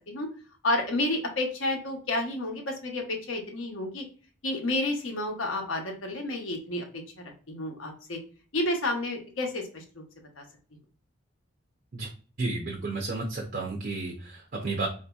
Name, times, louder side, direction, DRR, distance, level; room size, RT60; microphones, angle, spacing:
voice 1, 0.6-4.0 4.4-6.9 7.5-8.2 8.5-10.0 10.4-10.5, left 1 dB, 80° left, 2 dB, 0.9 m, -30 dB
voice 2, 12.4-14.9, right 3 dB, 45° right, 0 dB, 0.5 m, -32 dB
3.9 x 2.7 x 2.3 m, 0.40 s
head